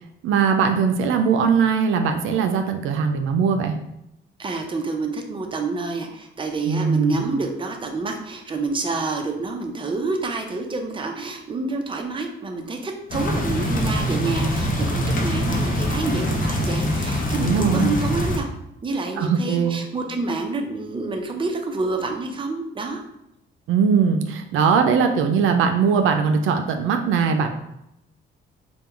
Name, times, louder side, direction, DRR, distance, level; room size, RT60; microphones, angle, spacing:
voice 1, 0.2-3.8 6.7-7.3 17.4-17.9 19.2-19.8 23.7-27.5, right 6 dB, 85° right, 6 dB, 0.5 m, -20 dB
voice 2, 4.4-18.5 18.8-23.0, right 3 dB, 25° right, 3 dB, 0.6 m, -28 dB
sound 1, 13.1-18.4, equal, 45° left, 0.8 m, -23 dB
3.6 x 2.3 x 4.4 m, 0.82 s
cardioid pair, 90°, 20 cm